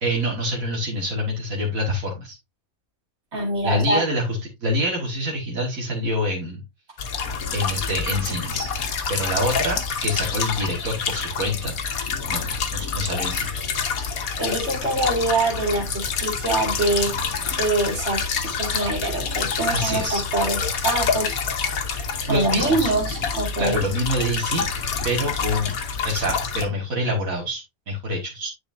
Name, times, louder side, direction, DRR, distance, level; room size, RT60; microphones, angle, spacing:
voice 1, 0.0-2.4 3.6-6.6 7.5-8.7 9.1-11.7 12.3-12.4 12.7-13.7 19.7-20.2 22.3-22.9 23.6-25.7 26.0-28.5, equal, 75° right, -2 dB, 2.1 m, -26 dB
voice 2, 3.3-4.0 14.0-21.4 22.2-23.8, right 2 dB, 50° right, 0 dB, 2.7 m, -25 dB
sound 1, 7.0-26.6, left 5 dB, 80° left, 1.4 m, -27 dB
9.7 x 4.9 x 2.6 m, 0.22 s
omnidirectional pair, 1.5 m